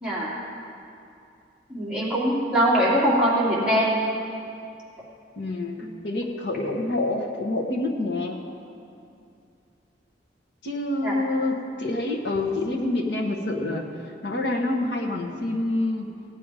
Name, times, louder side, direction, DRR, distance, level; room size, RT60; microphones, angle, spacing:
voice 1, 1.7-4.0 5.8-5.9 11.0-11.1, equal, 5° right, -8 dB, 2.7 m, -22 dB
voice 2, 5.4-8.4 10.6-13.9 14.2-16.1, left 2 dB, 70° left, 0 dB, 1.3 m, -27 dB
16.5 x 9.0 x 4.9 m, 2.5 s
head